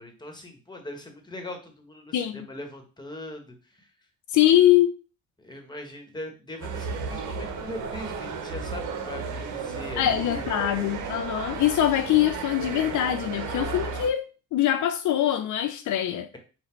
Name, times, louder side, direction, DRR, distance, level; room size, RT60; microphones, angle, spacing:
voice 1, 0.0-3.9 5.4-10.5, left 1 dB, 15° left, 1.2 m, -40 dB
voice 2, 2.1-2.5 4.3-4.9 10.0-14.2 14.5-16.3, left 12 dB, 75° left, 0.5 m, -23 dB
sound 1, 6.6-14.1, right 4 dB, 75° right, 0.8 m, -33 dB
4.0 x 2.3 x 4.4 m
cardioid pair, 90°, 30 cm